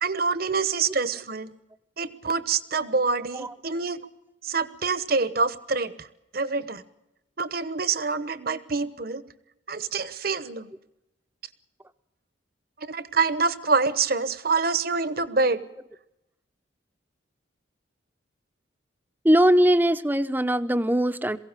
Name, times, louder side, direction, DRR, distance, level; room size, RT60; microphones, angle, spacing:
voice 1, 0.0-1.5 2.0-4.1 4.4-6.1 6.3-6.8 7.4-9.2 9.7-10.7 12.8-15.6, right 4 dB, 50° right, 14 dB, 1.1 m, -26 dB
voice 2, 19.2-21.4, equal, 10° right, 12 dB, 0.7 m, -21 dB
22.0 x 16.5 x 8.2 m, 0.91 s
head